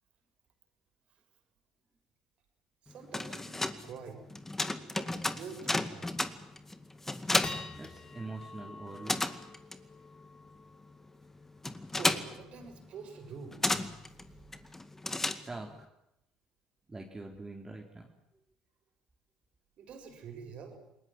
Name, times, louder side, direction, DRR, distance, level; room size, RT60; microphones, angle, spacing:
voice 1, 2.8-4.2 4.8-6.1 11.9-13.6 19.8-20.8, right 5 dB, 55° right, 5 dB, 6.9 m, -47 dB
sound 1, 2.9-8.5 8.7-15.8, left 2 dB, 15° left, 2.1 m, -34 dB
sound 2, 4.3-4.4 4.8-5.0 5.5-5.6 6.2-6.5 6.9-13.5, left 3 dB, 30° left, 3.4 m, -49 dB
voice 2, 7.7-9.3 15.5-15.9 16.9-18.1, right 2 dB, 20° right, 1 dB, 3.8 m, -44 dB
29.0 x 20.0 x 7.5 m, 0.84 s
hypercardioid pair, 60°, 2 cm